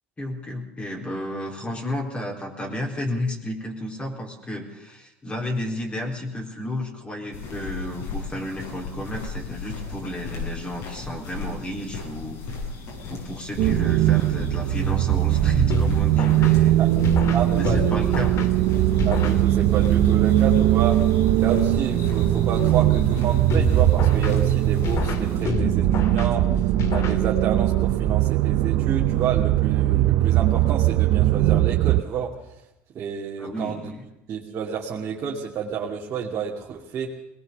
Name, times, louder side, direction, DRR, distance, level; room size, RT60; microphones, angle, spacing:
voice 1, 0.2-12.4 13.1-16.8 17.5-18.3 33.4-34.0, left 1 dB, 20° left, 0 dB, 4.0 m, -32 dB
sound 1, 7.3-25.5, left 4 dB, 65° left, 7.8 m, -35 dB
sound 2, 13.6-32.0, right 15 dB, 65° right, 1.0 m, -20 dB
sound 3, 15.7-19.9 23.5-27.7, left 4 dB, 50° left, 2.4 m, -30 dB
voice 2, 17.3-18.0 19.0-21.0 21.4-26.6 26.9-32.3 32.9-33.9 34.3-37.1, right 7 dB, 45° right, -2 dB, 2.7 m, -30 dB
20.5 x 19.5 x 6.9 m, 0.86 s
hypercardioid pair, 80°, 6 cm